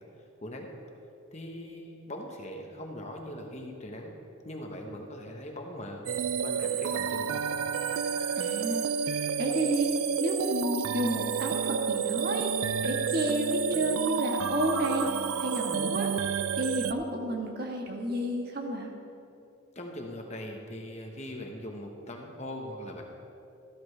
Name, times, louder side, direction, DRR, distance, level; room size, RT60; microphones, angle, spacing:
voice 1, 1.3-4.1 4.4-6.1 6.4-7.4 19.7-23.0, left 1 dB, 30° left, 1 dB, 1.1 m, -40 dB
sound 1, 6.1-16.9, right 7 dB, 85° right, 0.4 m, -30 dB
voice 2, 8.4-8.9 9.4-12.5 12.8-15.1 15.4-16.1 16.6-18.9, right 1 dB, 45° right, 1 dB, 1.4 m, -30 dB
13.5 x 13.0 x 3.3 m, 2.7 s
head